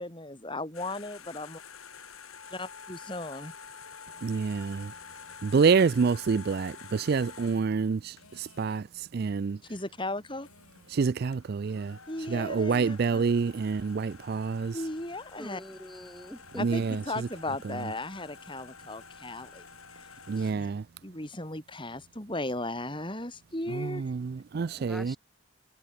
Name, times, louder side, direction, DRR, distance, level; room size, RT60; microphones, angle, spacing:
voice 1, 0.0-1.6 2.5-3.5 9.7-10.5 12.1-13.2 14.7-15.6 16.6-16.8 17.1-19.6 20.4-20.7 21.0-24.0, left 2 dB, 25° left, 3.4 m, -36 dB
sound 1, 0.7-8.8 10.1-10.2 10.4-20.5, left 6 dB, 85° left, 7.0 m, -49 dB
voice 2, 4.2-4.9 5.4-9.6 10.9-12.0 12.3-14.8 16.6-17.3 20.3-20.8 23.7-25.2, right 5 dB, 45° right, 0.3 m, -27 dB
voice 3, 15.4-16.8 24.5-25.2, equal, ahead, 2.3 m, -45 dB
head